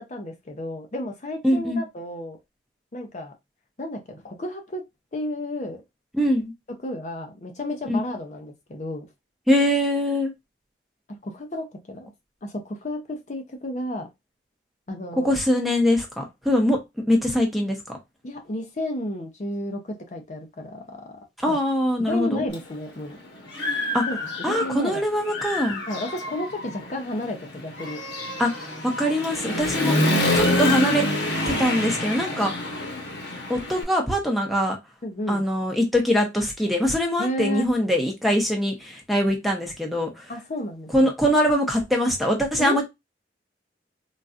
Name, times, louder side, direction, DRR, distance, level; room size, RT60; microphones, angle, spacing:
voice 1, 0.0-2.4 2.9-3.3 3.8-4.8 5.1-5.8 6.8-9.1 11.1-12.1 12.4-14.1 14.9-15.4 18.2-21.0 21.4-21.6 22.0-23.2 24.1-25.0 25.9-28.0 29.8-30.4 35.0-35.4 37.2-37.7 40.3-41.1 42.6-42.8, left 1 dB, 40° left, 0.5 m, -32 dB
voice 2, 1.4-1.8 6.1-6.5 7.9-8.0 9.5-10.3 15.1-16.8 17.1-18.0 21.4-22.5 23.9-24.0 24.4-25.8 28.4-30.0 30.3-31.2 31.5-32.5 33.5-34.8 35.3-40.3 40.9-42.8, equal, ahead, 0.7 m, -23 dB
Human voice / Motorcycle, 22.5-22.6 23.1-24.9 25.2-33.8, left 1 dB, 85° left, 1.1 m, -27 dB
3.9 x 2.2 x 2.4 m
head